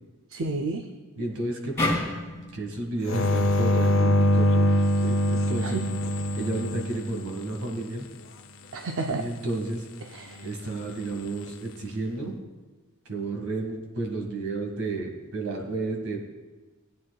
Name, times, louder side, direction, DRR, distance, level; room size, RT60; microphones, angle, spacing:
voice 1, 0.3-0.8 5.6-5.8 8.7-9.2 10.1-10.4, right 3 dB, 65° right, 4 dB, 0.5 m, -30 dB
voice 2, 1.2-2.0 2.5-4.7 5.0-5.8 6.3-8.1 9.1-9.9 10.4-12.4 13.1-16.3, right 2 dB, 85° right, 1 dB, 2.0 m, -32 dB
sound 1, 1.8-5.0, left 2 dB, 10° left, 2.5 m, -33 dB
sound 2, 3.1-7.7 11.0-11.5, equal, 60° left, 0.7 m, -24 dB
17.5 x 9.2 x 2.4 m, 1.3 s
head